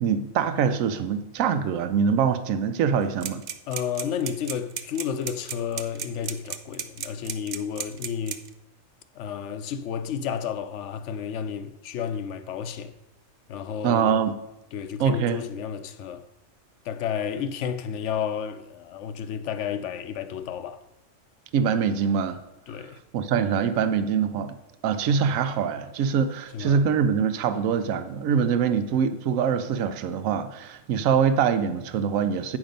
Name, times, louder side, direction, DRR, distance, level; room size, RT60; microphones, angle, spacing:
voice 1, 0.0-3.4 13.8-14.3 15.0-15.4 21.5-22.4 23.1-24.5 24.8-32.6, right 7 dB, 85° right, 1.0 m, -24 dB
sound 1, 3.2-8.5, right 8 dB, 60° right, 0.4 m, -33 dB
voice 2, 3.7-8.4 9.2-12.9 13.5-14.2 14.7-16.2 16.8-20.8 22.7-23.0 26.5-26.8, left 8 dB, 70° left, 0.9 m, -31 dB
8.8 x 6.0 x 5.2 m
omnidirectional pair, 1.4 m